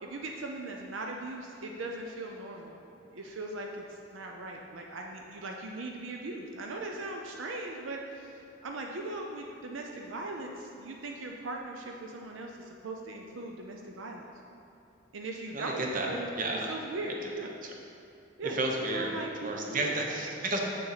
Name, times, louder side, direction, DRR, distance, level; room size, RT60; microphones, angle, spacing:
voice 1, 0.0-2.8 3.1-14.3 15.1-16.3 16.5-17.5 18.4-18.6 18.9-19.9, right 2 dB, 70° right, 1 dB, 0.6 m, -39 dB
voice 2, 15.5-16.7 17.2-17.3 17.6-17.7 18.4-19.1 19.4-20.6, right 2 dB, 40° right, 0 dB, 0.8 m, -32 dB
7.5 x 6.6 x 4.1 m, 2.6 s
head